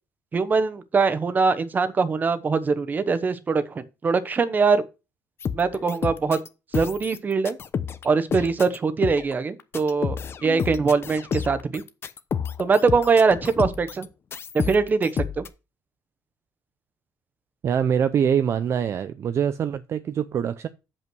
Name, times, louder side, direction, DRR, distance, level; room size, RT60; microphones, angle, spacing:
voice 1, 0.3-4.8 5.5-6.4 6.7-7.6 8.0-10.2 10.4-11.8 12.6-14.1 14.5-15.4, right 4 dB, 30° right, 1.0 m, -22 dB
sound 1, 5.4-6.5 6.7-8.1 8.3-8.8 9.0-9.3 9.6-14.1 14.3-15.5, left 7 dB, 40° left, 0.9 m, -30 dB
voice 2, 17.6-20.7, right 8 dB, 45° right, 0.5 m, -24 dB
7.2 x 5.6 x 6.2 m
cardioid pair, 125°, 6 cm